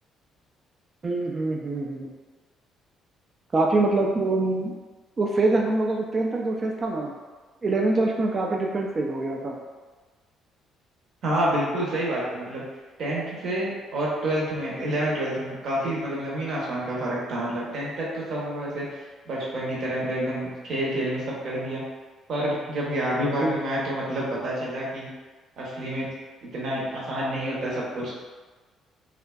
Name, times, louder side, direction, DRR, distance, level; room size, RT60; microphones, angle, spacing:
voice 1, 1.0-2.1 3.5-4.7 5.2-7.1 7.6-9.6 23.4-23.6, right 2 dB, 40° right, 0 dB, 0.3 m, -24 dB
voice 2, 11.2-12.6 13.0-18.9 19.3-21.8 22.3-25.1 25.6-26.1 26.4-28.1, right 1 dB, 60° right, -5 dB, 0.8 m, -28 dB
2.5 x 2.2 x 2.2 m, 1.3 s
hypercardioid pair, 55°, 0 cm